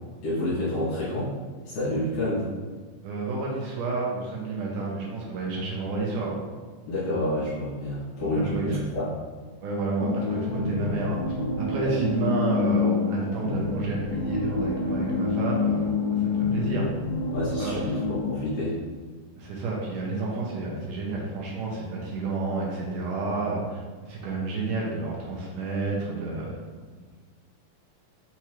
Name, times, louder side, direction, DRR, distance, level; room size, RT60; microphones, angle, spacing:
voice 1, 0.2-1.3 1.7-2.5 6.9-9.1 11.8-11.9 17.3-18.8, left 1 dB, 60° left, -10 dB, 2.4 m, -28 dB
voice 2, 3.0-6.4 8.3-8.8 9.6-16.9 17.6-18.0 19.4-26.5 26.9-27.0, right 3 dB, 80° right, -3 dB, 2.0 m, -30 dB
sound 1, 10.0-18.2, left 4 dB, 75° left, 2.3 m, -27 dB
5.7 x 2.9 x 3.0 m, 1.4 s
omnidirectional pair, 4.1 m